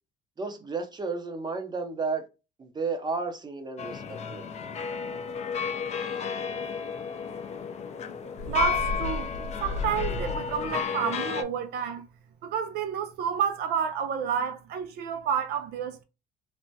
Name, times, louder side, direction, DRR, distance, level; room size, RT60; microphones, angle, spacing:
voice 1, 0.4-2.3 2.6-4.4, right 4 dB, 25° right, 0.7 m, -32 dB
sound 1, 3.8-11.4, left 6 dB, 40° left, 0.5 m, -33 dB
Bird, 8.4-10.8, left 3 dB, 85° left, 0.7 m, -34 dB
voice 2, 8.5-9.3 9.6-12.0 12.4-16.0, right 7 dB, 70° right, 0.5 m, -30 dB
3.3 x 2.1 x 2.7 m
cardioid pair, 110°, 17 cm